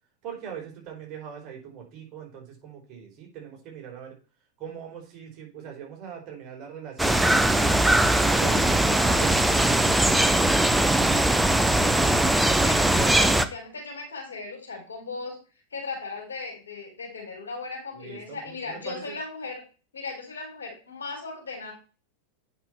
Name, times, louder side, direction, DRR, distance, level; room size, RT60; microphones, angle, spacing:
voice 1, 0.2-4.2 4.6-7.9 8.4-11.2 17.9-19.2, right 8 dB, 35° right, 0 dB, 4.2 m, -41 dB
sound 1, 7.0-13.4, right 1 dB, 5° right, 0.7 m, -20 dB
voice 2, 12.6-15.4 15.7-19.6 19.9-21.7, left 3 dB, 70° left, 1 dB, 4.0 m, -37 dB
9.2 x 6.0 x 4.4 m, 0.34 s
figure-of-eight pair, 90°, 0 cm